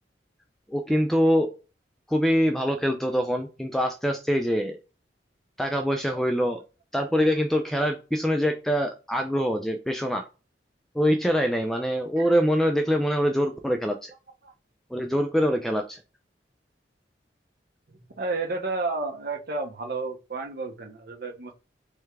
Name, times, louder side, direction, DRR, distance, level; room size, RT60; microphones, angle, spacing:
voice 1, 0.7-1.5 2.1-4.8 5.6-6.6 6.9-10.3 10.9-14.1 14.9-16.0, equal, ahead, 0.4 m, -24 dB
voice 2, 18.2-21.6, right 3 dB, 60° right, 0.8 m, -31 dB
3.5 x 3.2 x 3.2 m
head